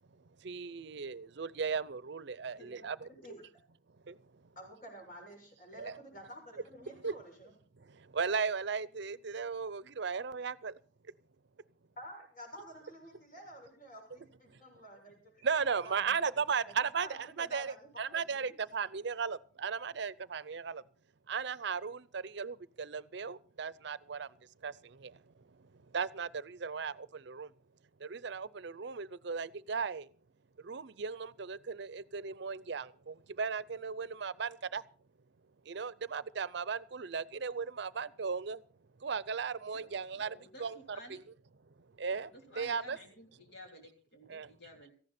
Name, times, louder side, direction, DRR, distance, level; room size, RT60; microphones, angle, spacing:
voice 1, 0.1-3.1 4.0-4.4 5.7-6.0 7.0-7.2 7.8-10.8 14.5-14.6 15.4-20.8 21.3-24.4 24.6-27.5 28.0-30.1 30.6-34.8 35.6-38.6 39.0-40.3 40.6-40.8 41.1-41.2 41.9-42.3 42.6-43.0 44.3-44.5, right 5 dB, 65° right, 0.6 m, -36 dB
voice 2, 3.1-3.4 4.5-7.5 12.0-15.4 15.8-16.7 17.0-18.5, right 1 dB, 50° left, 6.8 m, -51 dB
voice 3, 39.7-41.2 42.1-44.9, left 1 dB, 65° left, 3.4 m, -53 dB
17.5 x 14.5 x 4.3 m
head